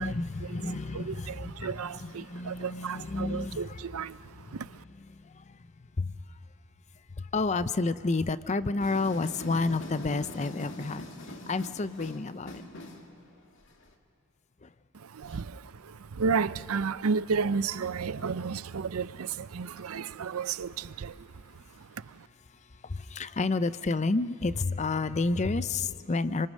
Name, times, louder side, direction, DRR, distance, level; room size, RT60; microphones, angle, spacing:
voice 1, 0.0-3.8 4.5-4.6 5.1-5.6 6.0-6.2 7.2-12.6 14.6-14.7 18.2-18.3 22.8-26.5, left 3 dB, 30° left, 0.5 m, -30 dB
voice 2, 0.9-4.8 14.9-22.3, right 5 dB, 75° right, 0.5 m, -33 dB
sound 1, 8.8-13.9, left 1 dB, 60° left, 2.1 m, -43 dB
27.0 x 25.0 x 6.4 m
head